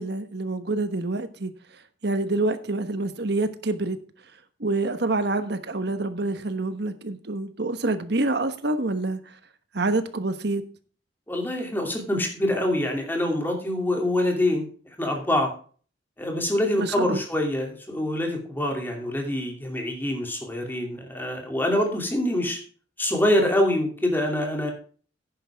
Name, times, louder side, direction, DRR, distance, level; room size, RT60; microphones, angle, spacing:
voice 1, 0.0-1.5 2.0-4.0 4.6-9.2 9.7-10.6 16.8-17.2, right 2 dB, 60° right, 10 dB, 1.2 m, -27 dB
voice 2, 11.3-14.7 15.0-15.5 16.2-22.6 23.0-24.7, left 1 dB, 10° left, 2 dB, 2.7 m, -25 dB
10.5 x 10.0 x 3.5 m, 0.42 s
head